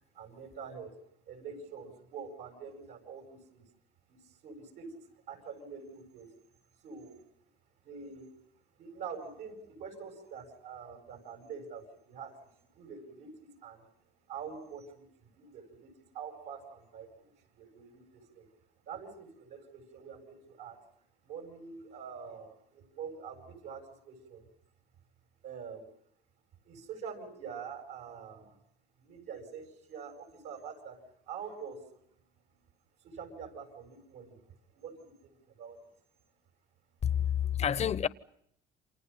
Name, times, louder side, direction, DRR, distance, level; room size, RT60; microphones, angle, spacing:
voice 1, 0.1-0.9 1.3-3.7 4.1-6.3 6.8-7.2 7.8-8.3 8.8-13.9 14.3-15.1 15.4-18.5 18.9-20.8 21.2-24.5 25.4-25.9 26.6-28.6 29.0-31.9 33.0-35.9, right 6 dB, 80° right, 7.9 m, -46 dB
voice 2, 37.0-38.1, left 9 dB, 40° left, 0.9 m, -29 dB
29.0 x 27.0 x 5.7 m
cardioid pair, 110°, 17 cm